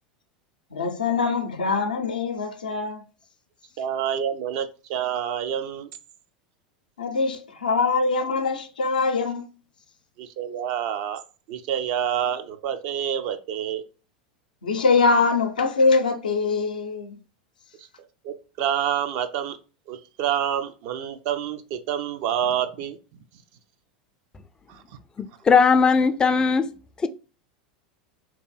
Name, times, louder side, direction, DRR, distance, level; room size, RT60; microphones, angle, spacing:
voice 1, 0.7-3.0 7.0-9.5 14.6-17.2, left 4 dB, 85° left, 0.5 m, -23 dB
voice 2, 3.8-5.9 10.2-11.2 11.5-13.8 17.8-17.9 18.2-19.6 19.9-23.0 23.3-23.4 24.7-25.0, right 9 dB, 55° right, 0.4 m, -28 dB
voice 3, 25.2-26.7 27.0-27.1, left 5 dB, 20° left, 0.3 m, -19 dB
2.8 x 2.5 x 2.3 m
hypercardioid pair, 90°, 4 cm